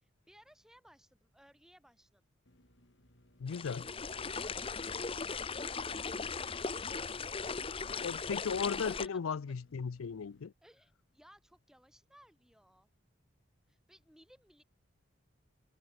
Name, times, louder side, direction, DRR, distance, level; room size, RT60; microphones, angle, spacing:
voice 1, 0.0-2.2 4.4-7.1 7.8-7.9 8.9-9.4 10.6-12.9 13.7-14.6, equal, ahead, 4.9 m, -63 dB
sound 1, 2.5-10.5, left 1 dB, 55° left, 5.0 m, -66 dB
voice 2, 3.4-3.9 8.0-10.5, left 6 dB, 90° left, 0.5 m, -36 dB
sound 2, 3.5-9.1, left 5 dB, 25° left, 0.8 m, -38 dB
head